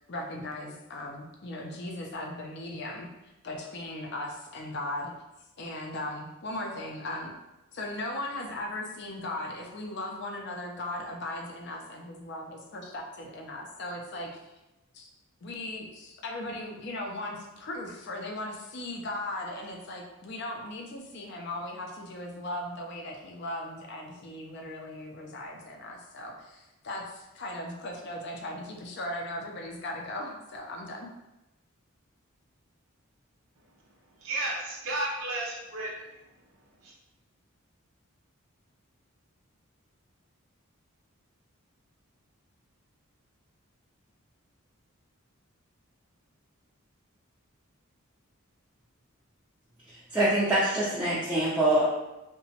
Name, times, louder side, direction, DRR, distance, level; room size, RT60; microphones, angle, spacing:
voice 1, 0.0-5.1 5.6-7.3 7.7-14.3 14.9-15.1 15.4-31.1, left 1 dB, 50° left, 1 dB, 0.4 m, -38 dB
voice 2, 34.2-36.2 36.8-36.9, right 2 dB, 65° right, -3 dB, 0.7 m, -33 dB
voice 3, 50.1-51.9, right 1 dB, 5° right, -10 dB, 0.4 m, -24 dB
2.8 x 2.1 x 2.8 m, 0.97 s
head